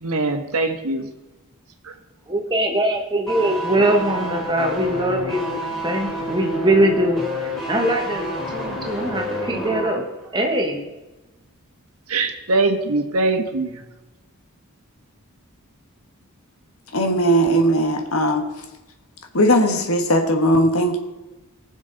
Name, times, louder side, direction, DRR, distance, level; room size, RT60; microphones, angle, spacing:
voice 1, 0.0-1.1 12.1-13.8, right 2 dB, 80° right, 5 dB, 1.4 m, -22 dB
voice 2, 2.3-10.0 10.3-10.8, right 1 dB, 20° right, 3 dB, 1.4 m, -22 dB
sound 1, 3.3-10.0 10.2-10.4, equal, ahead, 3.8 m, -29 dB
voice 3, 16.9-18.5 19.3-21.0, equal, 70° left, 4 dB, 1.6 m, -18 dB
19.5 x 7.3 x 4.0 m, 1.1 s
head